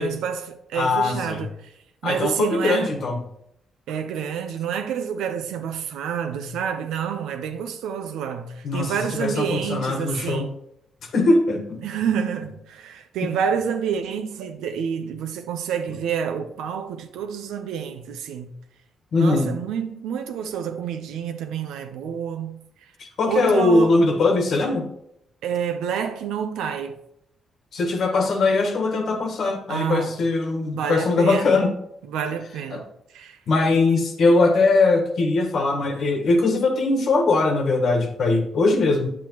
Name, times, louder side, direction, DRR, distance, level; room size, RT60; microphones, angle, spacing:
voice 1, 0.0-1.5 2.0-3.0 3.9-10.5 11.8-18.5 19.2-22.6 23.3-24.1 25.4-27.0 29.7-30.1 30.7-31.5 32.1-32.8 33.1-33.4, right 7 dB, 90° right, 0.7 m, -28 dB
voice 2, 0.7-1.4 2.0-3.2 8.6-10.5 11.1-11.8 13.2-13.3 19.1-19.6 23.0-24.9 27.7-31.7 32.7-32.8 33.5-39.1, left 3 dB, 65° left, 1.5 m, -21 dB
8.8 x 7.5 x 3.1 m
cardioid pair, 80°, 0 cm